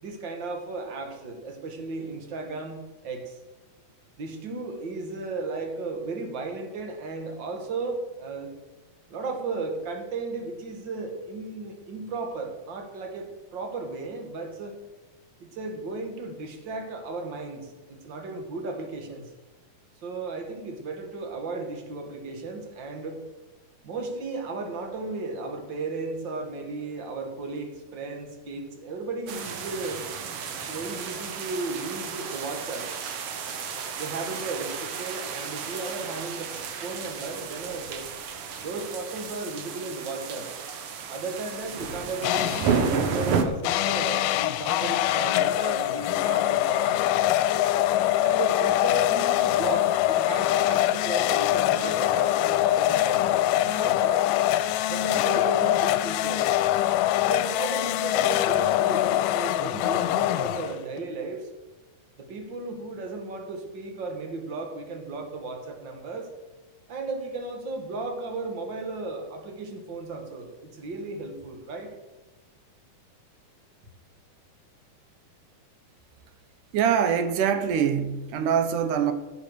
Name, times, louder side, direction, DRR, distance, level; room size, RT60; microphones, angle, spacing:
voice 1, 0.0-2.8 3.0-3.4 4.2-8.5 9.1-14.8 15.4-19.3 20.0-23.2 23.8-30.0 30.6-32.9 34.0-36.5 36.8-38.1 38.6-40.5 41.1-47.2 48.2-54.2 54.9-56.5 57.2-61.5 62.2-66.3 66.9-71.9, right 3 dB, 40° right, 2.0 m, -35 dB
sound 1, 29.3-43.4, right 6 dB, 60° right, 1.6 m, -32 dB
sound 2, 42.2-42.9 43.6-61.0, left 14 dB, 85° left, 2.2 m, -24 dB
voice 2, 76.7-79.1, right 8 dB, 75° right, 2.5 m, -24 dB
15.5 x 7.4 x 6.4 m
omnidirectional pair, 3.8 m